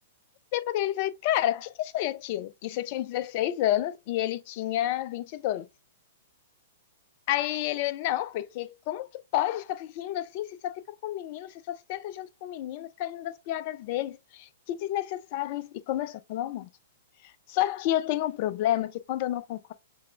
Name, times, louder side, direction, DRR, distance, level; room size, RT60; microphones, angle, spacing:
voice 1, 0.5-5.7 7.3-9.1 9.3-16.7 17.5-19.7, left 13 dB, 40° left, 0.4 m, -30 dB
4.7 x 3.4 x 2.2 m
figure-of-eight pair, 110°, 0 cm